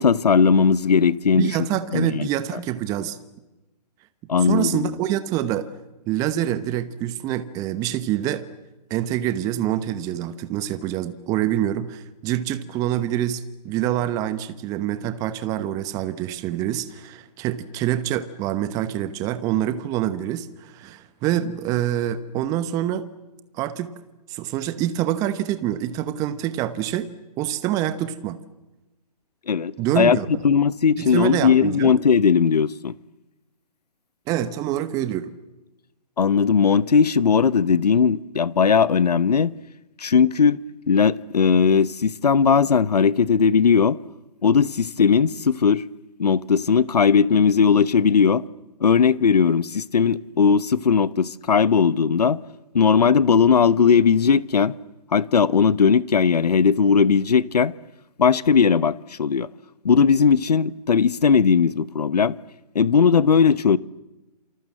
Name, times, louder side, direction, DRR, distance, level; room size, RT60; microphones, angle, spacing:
voice 1, 0.0-1.6 1.9-2.3 4.3-4.9 29.5-30.2 30.4-32.9 36.2-39.5 40.0-40.6 40.9-44.0 44.4-45.8 46.2-48.4 48.8-52.4 52.7-54.7 55.1-57.7 58.2-59.5 59.8-62.4 62.7-63.8, left 6 dB, 70° left, 1.0 m, -18 dB
voice 2, 1.3-3.2 4.4-5.7 6.1-8.4 8.9-23.0 23.5-23.9 24.3-27.1 27.4-28.4 29.8-30.4 31.0-31.9 34.3-35.3, right 12 dB, 15° right, 1.0 m, -26 dB
28.0 x 25.0 x 7.7 m
figure-of-eight pair, 145°, 21 cm